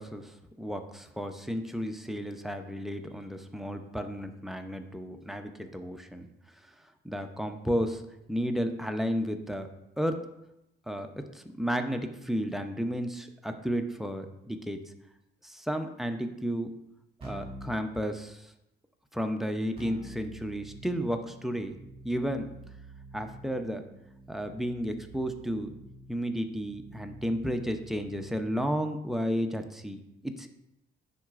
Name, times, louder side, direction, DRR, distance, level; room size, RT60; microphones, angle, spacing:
voice 1, 0.0-6.3 7.0-8.0 8.3-9.7 10.0-10.2 10.9-14.8 15.4-16.7 17.2-18.5 19.1-21.8 22.0-22.5 23.1-23.8 24.3-25.8 26.1-30.5, equal, ahead, 7 dB, 0.6 m, -33 dB
Keyboard (musical), 17.2-17.8 19.8-28.6, right 1 dB, 30° right, 2.4 m, -48 dB
10.0 x 4.1 x 2.5 m, 0.86 s
cardioid pair, 90°, 20 cm